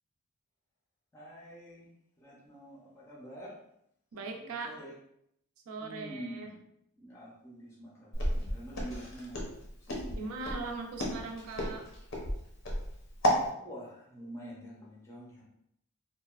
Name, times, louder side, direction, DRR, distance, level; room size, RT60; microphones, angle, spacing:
voice 1, 1.1-1.9 2.2-3.5 4.2-4.9 5.8-6.6 7.0-9.4 9.9-10.3 13.5-15.4, right 1 dB, 15° left, -5 dB, 0.5 m, -47 dB
voice 2, 4.1-4.8 5.7-6.5 10.2-11.8, right 3 dB, 70° right, 3 dB, 0.4 m, -39 dB
Walk footsteps, 8.1-13.5, equal, 60° left, 0.6 m, -32 dB
2.8 x 2.1 x 2.2 m, 0.76 s
head